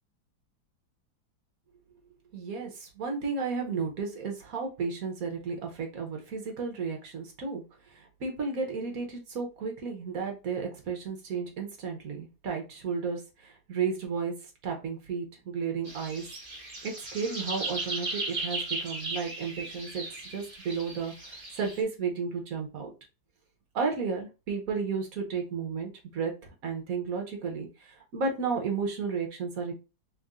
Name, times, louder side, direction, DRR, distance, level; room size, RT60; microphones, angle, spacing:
voice 1, 2.3-14.3 14.6-16.2 16.8-22.9 23.7-26.3 26.6-29.7, right 5 dB, 55° right, 2 dB, 1.1 m, -33 dB
sound 1, 15.8-21.8, right 2 dB, 25° right, 1.1 m, -37 dB
3.6 x 2.6 x 3.4 m, 0.30 s
omnidirectional pair, 2.2 m